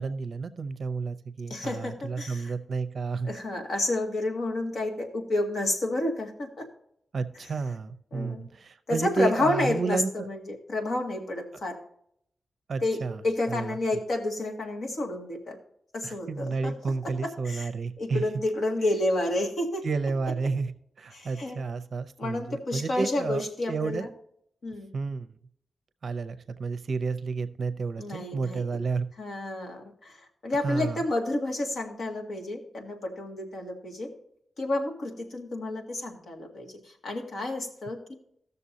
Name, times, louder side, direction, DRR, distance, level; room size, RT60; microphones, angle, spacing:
voice 1, 0.0-3.3 7.1-10.3 12.7-13.2 13.5-13.7 16.0-18.2 19.8-20.7 21.0-23.4 23.7-24.1 24.9-25.3 26.0-29.1 30.6-31.0, right 4 dB, 50° right, 11 dB, 0.6 m, -31 dB
voice 2, 1.5-2.5 3.2-6.7 7.4-7.5 8.1-8.5 8.9-11.8 12.8-15.6 15.9-16.7 17.0-17.7 18.0-19.8 21.1-21.6 22.2-24.1 24.6-24.9 28.0-28.7 29.2-34.1 34.6-38.1, left 2 dB, 55° left, 2 dB, 1.8 m, -30 dB
15.0 x 6.7 x 2.8 m, 0.70 s
wide cardioid pair, 170°, 0 cm